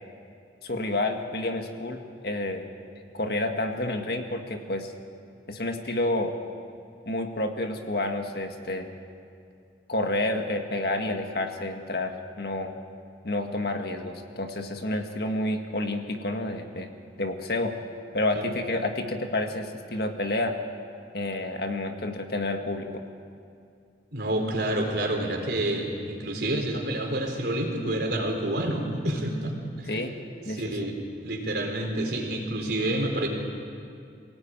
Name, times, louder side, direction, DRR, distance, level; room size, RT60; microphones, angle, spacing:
voice 1, 0.6-2.7 3.1-4.9 5.5-6.4 7.1-8.9 9.9-12.7 13.2-16.9 17.2-17.7 18.1-20.6 21.1-23.0 29.9-30.1 30.4-30.9, left 2 dB, 60° left, 4 dB, 1.9 m, -29 dB
voice 2, 24.1-30.0 30.6-30.9 31.2-33.3, right 1 dB, 65° right, 1 dB, 4.2 m, -28 dB
23.5 x 17.5 x 9.1 m, 2.4 s
head